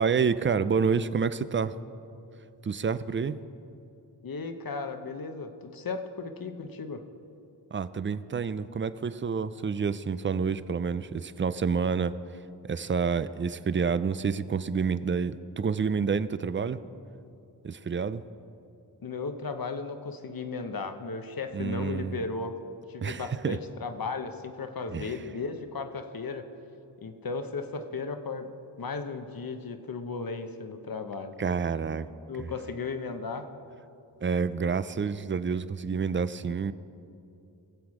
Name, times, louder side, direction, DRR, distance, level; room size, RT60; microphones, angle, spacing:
voice 1, 0.0-1.7 2.6-3.4 7.7-12.1 12.7-16.8 17.6-18.2 21.5-22.2 23.0-23.6 24.9-25.1 31.4-32.1 32.4-32.5 34.2-36.7, right 5 dB, 30° right, 15 dB, 0.4 m, -28 dB
voice 2, 4.2-7.0 19.0-22.5 22.9-26.4 27.0-28.5 28.8-31.3 32.3-33.4, left 4 dB, 55° left, 7 dB, 1.0 m, -35 dB
20.0 x 8.1 x 4.8 m, 2.7 s
wide cardioid pair, 105°, 43 cm